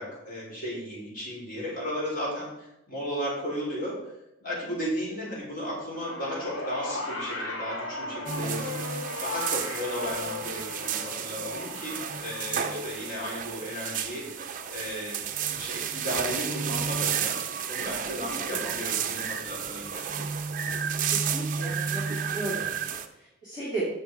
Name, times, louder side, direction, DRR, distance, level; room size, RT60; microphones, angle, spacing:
voice 1, 0.0-3.9 4.4-8.7 9.2-15.2 15.5-17.4 17.7-20.1, equal, 40° left, -5 dB, 3.7 m, -35 dB
sound 1, 5.9-16.4 17.4-17.5, left 2 dB, 75° left, 2.0 m, -38 dB
sound 2, 8.3-23.1, right 7 dB, 40° right, 0.6 m, -32 dB
voice 2, 18.3-18.6 21.1-23.9, right 2 dB, 20° left, -9 dB, 2.3 m, -35 dB
9.2 x 7.0 x 4.7 m, 0.89 s
head